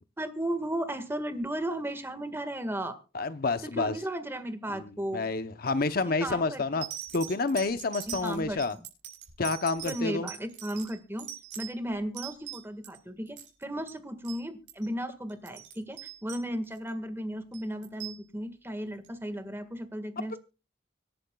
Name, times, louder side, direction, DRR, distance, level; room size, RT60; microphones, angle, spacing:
voice 1, 0.2-3.0 3.6-5.2 6.2-6.8 8.1-8.8 9.8-11.3 11.5-20.4, right 1 dB, 15° right, 9 dB, 1.7 m, -35 dB
voice 2, 3.1-3.9 4.7-6.8 7.1-8.8 9.4-10.3, left 3 dB, 55° left, 11 dB, 0.8 m, -29 dB
sound 1, 6.0-6.2 6.8-13.0 13.3-13.6 13.9-14.0 14.2-14.4 14.7-14.9 15.3-16.9 17.5-18.2 19.0-19.1, right 12 dB, 80° right, 6.3 m, -42 dB
25.5 x 11.0 x 2.3 m, 0.32 s
head